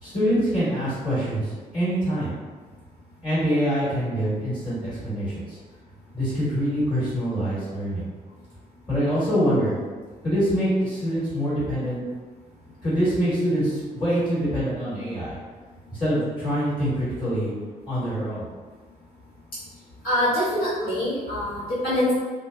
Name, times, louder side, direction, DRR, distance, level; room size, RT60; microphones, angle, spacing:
voice 1, 0.0-2.3 3.2-5.6 6.1-8.1 8.9-9.7 10.2-12.0 12.8-15.4 15.9-17.5 17.9-18.5, equal, 20° left, -11 dB, 1.4 m, -25 dB
voice 2, 20.0-22.1, left 1 dB, 65° left, -13 dB, 1.3 m, -24 dB
2.6 x 2.0 x 2.3 m, 1.4 s
figure-of-eight pair, 40°, 21 cm